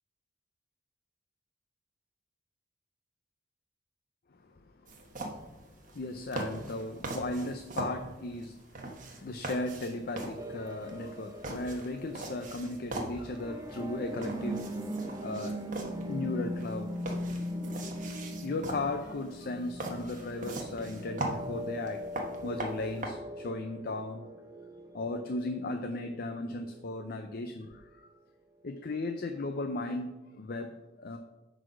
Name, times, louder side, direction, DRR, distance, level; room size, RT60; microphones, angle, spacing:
sound 1, 4.9-23.1, right 2 dB, 40° right, 1.2 m, -41 dB
voice 1, 5.9-14.7 15.2-15.6 16.1-16.9 18.4-22.0 22.4-24.3 24.9-28.1 28.6-30.7 31.0-31.2, left 2 dB, 50° left, 7 dB, 0.5 m, -36 dB
sound 2, 10.4-28.0, equal, 15° right, 0.5 m, -40 dB
9.4 x 4.1 x 6.1 m, 1.1 s
head